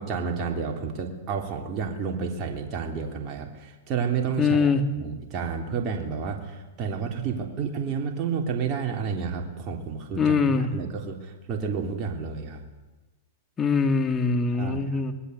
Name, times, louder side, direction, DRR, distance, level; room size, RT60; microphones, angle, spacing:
voice 1, 0.0-4.7 5.0-12.6 14.5-14.9, right 6 dB, 35° right, 2 dB, 3.6 m, -30 dB
voice 2, 4.4-4.8 10.2-10.7 13.6-15.1, left 5 dB, 20° left, 6 dB, 3.0 m, -22 dB
25.0 x 19.5 x 8.3 m, 1.1 s
hypercardioid pair, 120°, 0 cm